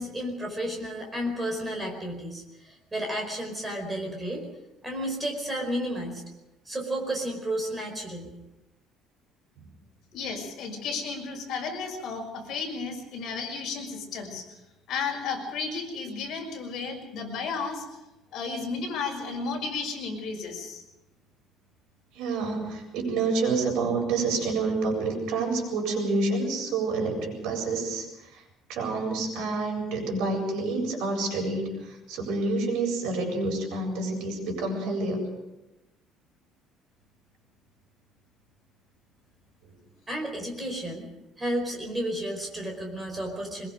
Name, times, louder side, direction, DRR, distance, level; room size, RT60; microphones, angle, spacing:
voice 1, 0.0-4.5 4.8-6.2 6.6-8.3 40.1-41.1 41.4-43.7, right 1 dB, 10° right, 2 dB, 4.8 m, -32 dB
voice 2, 10.1-14.4 14.9-17.8 18.3-20.8, left 4 dB, 50° left, 1 dB, 6.1 m, -33 dB
voice 3, 22.1-28.1 28.7-35.2, right 3 dB, 75° right, 2 dB, 7.7 m, -28 dB
24.0 x 22.0 x 5.2 m, 0.95 s
cardioid pair, 170°, 0 cm